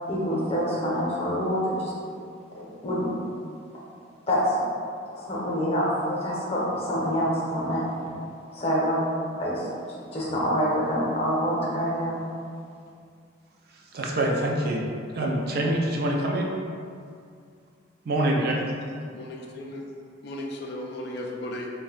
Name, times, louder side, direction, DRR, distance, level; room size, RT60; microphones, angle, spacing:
voice 1, 0.1-1.9 2.5-3.1 4.3-4.5 5.2-7.8 8.5-9.1 9.4-12.2, equal, 30° left, -6 dB, 0.7 m, -26 dB
voice 2, 13.7-14.8 15.1-16.5 18.1-18.8, right 1 dB, 50° right, -1 dB, 0.4 m, -25 dB
voice 3, 19.1-19.9 20.2-21.7, left 1 dB, 55° left, 0 dB, 0.3 m, -35 dB
2.6 x 2.2 x 4.0 m, 2.3 s
head